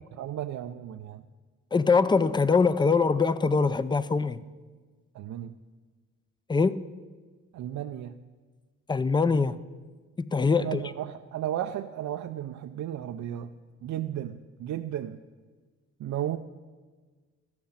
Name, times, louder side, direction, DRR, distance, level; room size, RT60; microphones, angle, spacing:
voice 1, 0.1-1.3 5.1-5.6 7.5-8.2 10.5-13.5 13.8-15.2 16.0-16.4, right 11 dB, 65° right, 0.6 m, -34 dB
voice 2, 1.7-4.4 6.5-6.8 8.9-9.6 10.2-10.8, left 4 dB, 15° left, 0.5 m, -23 dB
14.0 x 6.0 x 8.8 m
cardioid pair, 90°, 30 cm